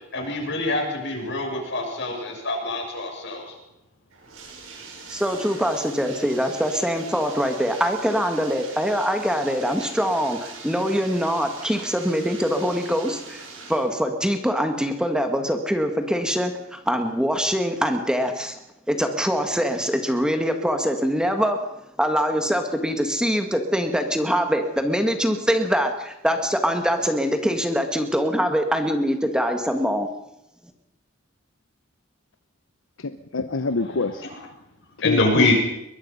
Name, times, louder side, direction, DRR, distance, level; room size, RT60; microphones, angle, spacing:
voice 1, 0.1-3.6 34.3-34.4 35.0-35.5, left 2 dB, 65° left, 2 dB, 6.8 m, -25 dB
Bathtub (filling or washing), 4.1-13.9, right 4 dB, 90° right, 6.3 m, -41 dB
voice 2, 5.1-18.6 18.9-21.6 22.0-30.1, equal, 5° right, 5 dB, 1.7 m, -23 dB
voice 3, 33.0-34.3 35.0-35.5, left 4 dB, 85° left, 9 dB, 0.9 m, -25 dB
22.5 x 21.5 x 5.6 m, 0.87 s
head